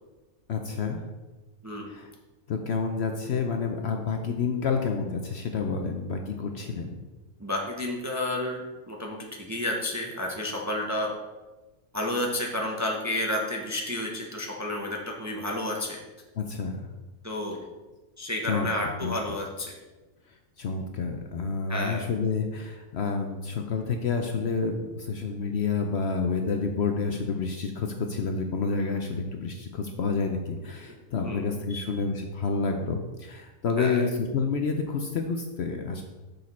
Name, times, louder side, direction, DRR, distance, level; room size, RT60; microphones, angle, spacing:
voice 1, 0.5-1.0 1.9-2.1 2.5-7.0 16.4-16.8 18.5-18.7 19.0-19.1 20.6-36.0, left 4 dB, 60° left, 4 dB, 0.8 m, -29 dB
voice 2, 7.4-8.6 8.9-11.1 11.9-16.0 17.2-17.6 18.2-19.7 21.7-22.1 30.9-31.8 33.8-34.0, left 1 dB, 15° right, 0 dB, 0.7 m, -31 dB
6.6 x 6.6 x 4.2 m, 1.2 s
omnidirectional pair, 1.5 m